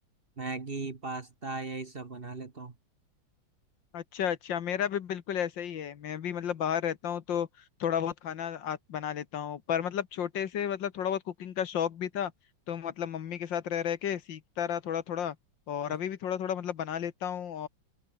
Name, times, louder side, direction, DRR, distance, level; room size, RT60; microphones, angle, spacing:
voice 1, 0.4-2.7 15.9-16.0, right 3 dB, 30° right, 1.5 m, -37 dB
voice 2, 3.9-7.5 7.8-12.3 12.7-15.4 15.7-17.7, left 9 dB, 75° left, 1.9 m, -32 dB
omnidirectional pair, 2.1 m